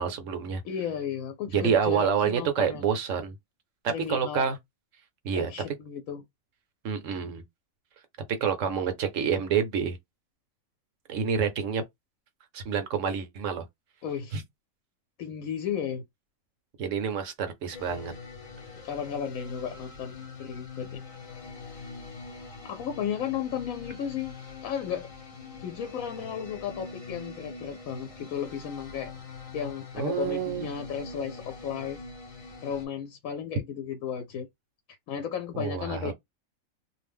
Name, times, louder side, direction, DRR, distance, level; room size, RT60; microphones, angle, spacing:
voice 1, 0.0-0.6 1.5-3.4 3.8-4.6 5.2-5.5 6.8-7.4 8.4-10.0 11.1-11.8 12.5-13.6 14.3-14.4 16.8-18.1 30.0-30.7 35.5-36.1, right 7 dB, 70° right, 1.1 m, -28 dB
voice 2, 0.6-2.8 3.9-4.5 5.4-6.2 14.0-14.4 15.2-16.0 18.8-21.1 22.6-24.3 24.6-25.1 25.6-29.1 29.5-32.0 32.6-34.5 35.1-36.1, left 8 dB, 85° left, 1.0 m, -34 dB
sound 1, 17.7-32.9, left 4 dB, 35° left, 0.6 m, -43 dB
2.6 x 2.1 x 3.5 m
omnidirectional pair, 1.4 m